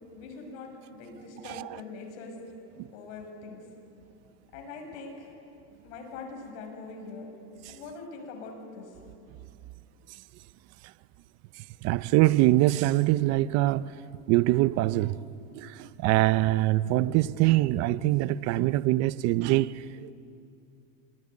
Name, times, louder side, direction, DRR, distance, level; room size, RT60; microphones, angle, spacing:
voice 1, 0.1-2.4 2.9-3.6 4.5-5.3 5.8-7.3 7.7-8.9, left 4 dB, 65° left, 7.0 m, -42 dB
voice 2, 11.8-13.9 14.3-15.2 15.5-20.1, right 16 dB, 40° right, 0.6 m, -24 dB
26.5 x 21.5 x 9.7 m
supercardioid pair, 150°, 39 cm